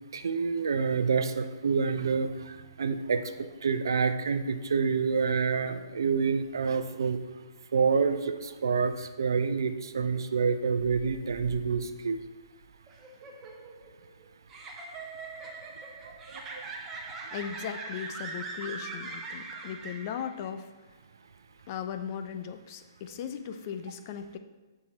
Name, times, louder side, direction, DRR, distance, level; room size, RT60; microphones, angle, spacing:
voice 1, 0.1-7.2 7.7-12.2, right 5 dB, 70° right, 10 dB, 0.7 m, -28 dB
sound 1, 12.9-20.5, right 3 dB, 20° right, 1.2 m, -41 dB
voice 2, 17.3-20.7 21.7-24.4, left 8 dB, 40° left, 9 dB, 0.7 m, -37 dB
14.0 x 4.9 x 4.2 m, 1.3 s
figure-of-eight pair, 125°, 2 cm